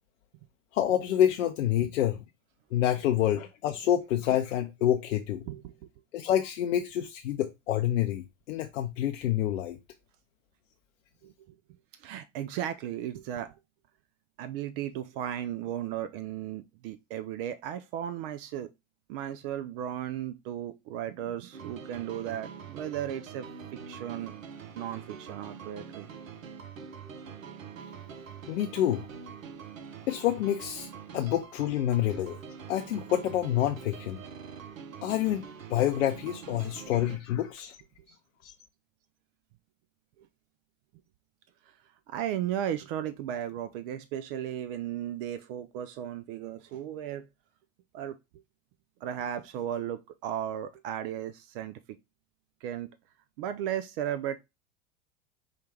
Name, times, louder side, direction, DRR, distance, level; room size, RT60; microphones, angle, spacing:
voice 1, 0.7-2.2 2.7-5.4 6.1-9.8 28.5-29.1 30.1-30.9 31.1-32.4 32.7-34.2 35.0-37.8 38.4-38.5, left 11 dB, 70° left, 0.6 m, -27 dB
voice 2, 2.8-3.3 5.5-5.7 11.2-11.6 12.0-13.5 14.4-18.7 19.1-24.3 24.7-26.1 31.2-31.4 40.2-40.3 42.1-47.3 47.9-48.2 49.0-51.8 52.6-52.9 53.4-54.4, right 10 dB, 45° right, 0.4 m, -35 dB
sound 1, 21.5-37.2, right 6 dB, 90° right, 0.6 m, -45 dB
4.7 x 2.3 x 3.2 m
hypercardioid pair, 90°, 39 cm